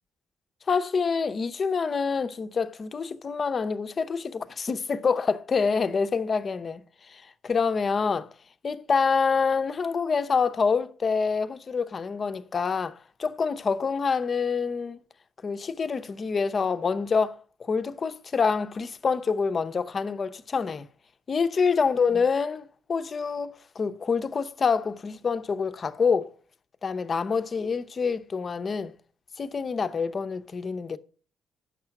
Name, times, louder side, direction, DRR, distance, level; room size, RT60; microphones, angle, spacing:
voice 1, 0.7-8.3 8.6-15.0 15.4-20.9 21.3-26.3 26.8-28.9 29.4-31.0, left 5 dB, 40° left, 0.7 m, -26 dB
8.8 x 6.7 x 5.8 m
cardioid pair, 90°, 0 cm